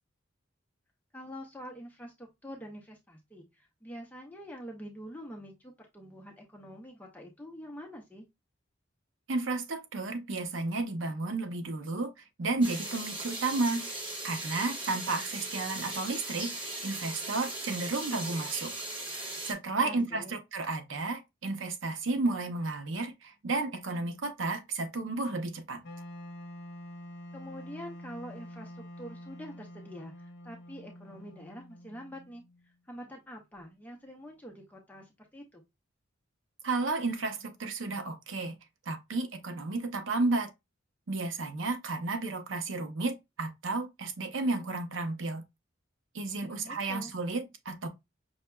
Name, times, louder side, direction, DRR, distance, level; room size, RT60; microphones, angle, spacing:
voice 1, 1.1-8.3 19.7-20.3 27.3-35.6 46.5-47.1, equal, 10° left, 0.7 m, -46 dB
voice 2, 9.3-12.1 12.4-13.8 14.2-16.5 16.8-18.7 19.5-25.8 36.6-38.6 38.9-40.5 41.1-45.4 46.1-47.9, right 3 dB, 80° right, 0.7 m, -32 dB
sound 1, 12.6-19.5, right 2 dB, 25° right, 1.3 m, -38 dB
Wind instrument woodwind instrument, 25.8-32.8, equal, 60° left, 0.8 m, -47 dB
5.7 x 2.7 x 2.2 m
head